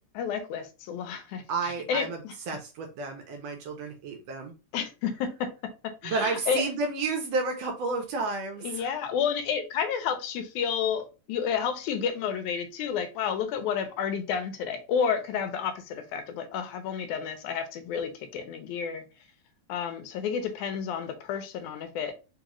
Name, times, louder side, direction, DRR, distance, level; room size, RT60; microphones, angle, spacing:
voice 1, 0.1-2.3 4.7-5.5 6.0-6.6 8.6-19.0 19.7-22.1, left 7 dB, 85° left, 8 dB, 2.0 m, -31 dB
voice 2, 1.5-2.2 2.5-4.5 6.0-8.9, right 3 dB, 75° right, 2 dB, 1.5 m, -31 dB
4.7 x 2.4 x 2.9 m, 0.31 s
omnidirectional pair, 3.5 m